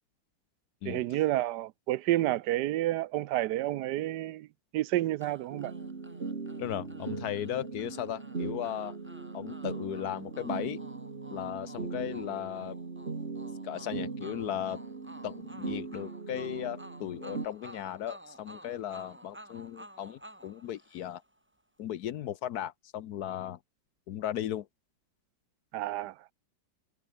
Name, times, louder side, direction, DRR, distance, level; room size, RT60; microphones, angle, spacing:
voice 1, 0.8-4.5 4.7-5.7 25.7-26.1, right 15 dB, 70° right, 1.1 m, -30 dB
sound 1, 5.2-21.4, right 1 dB, 5° right, 2.2 m, -52 dB
sound 2, 5.5-17.5, right 4 dB, 35° right, 2.2 m, -39 dB
voice 2, 6.6-9.0 9.3-10.8 11.3-12.8 13.6-14.8 15.2-21.2 21.8-23.6 24.1-24.7, left 11 dB, 65° left, 1.1 m, -36 dB
omnidirectional pair, 2.1 m